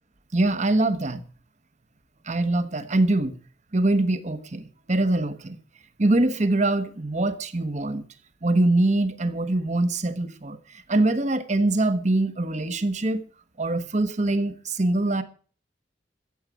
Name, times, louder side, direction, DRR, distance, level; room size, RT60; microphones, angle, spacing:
voice 1, 0.3-1.2 2.3-3.3 3.7-4.6 4.9-5.6 6.0-8.0 8.4-13.2 13.6-15.2, right 2 dB, 40° right, 1.2 m, -23 dB
14.5 x 7.3 x 8.3 m
head